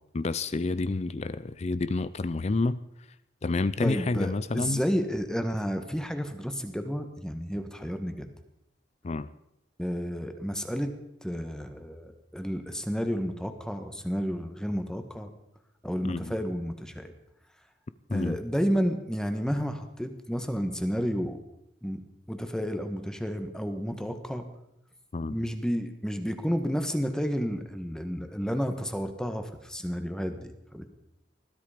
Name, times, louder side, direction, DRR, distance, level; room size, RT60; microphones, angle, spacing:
voice 1, 0.1-2.8 3.4-4.8 9.0-9.3 16.0-16.3 18.1-18.4 25.1-25.4, left 3 dB, 35° left, 0.5 m, -29 dB
voice 2, 3.8-8.3 9.8-10.9 11.2-15.3 15.8-17.1 18.1-21.4 21.8-22.0 22.3-24.4 25.3-30.9, equal, 5° left, 1.5 m, -31 dB
20.5 x 13.5 x 5.1 m
head